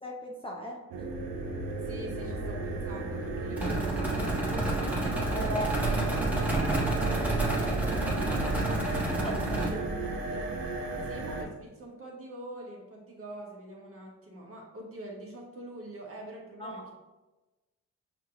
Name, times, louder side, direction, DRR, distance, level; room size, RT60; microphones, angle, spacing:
voice 1, 0.0-0.8 5.3-6.1 8.7-8.8 9.2-9.8 16.6-16.8, equal, 15° left, -1 dB, 0.7 m, -37 dB
sound 1, 0.9-11.4, right 2 dB, 80° right, 0.8 m, -34 dB
voice 2, 1.8-5.0 7.7-8.8 11.0-16.9, right 1 dB, 40° right, -2 dB, 1.4 m, -45 dB
sound 2, 3.6-9.7, right 2 dB, 5° right, 1.4 m, -29 dB
5.7 x 2.9 x 2.6 m, 1.1 s
supercardioid pair, 60°, 34 cm